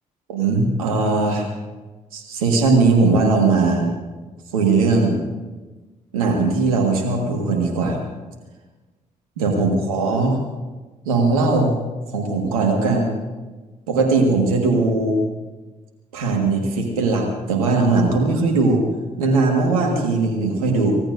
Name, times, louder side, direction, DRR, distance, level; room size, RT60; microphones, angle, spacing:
voice 1, 0.3-1.5 2.1-3.9 4.5-5.2 6.1-8.0 9.4-10.4 11.1-11.7 12.1-13.1 13.9-15.2 16.1-18.8 19.2-21.0, right 3 dB, 90° right, 1 dB, 1.7 m, -19 dB
24.0 x 18.0 x 2.6 m, 1.2 s
hypercardioid pair, 40°, 18 cm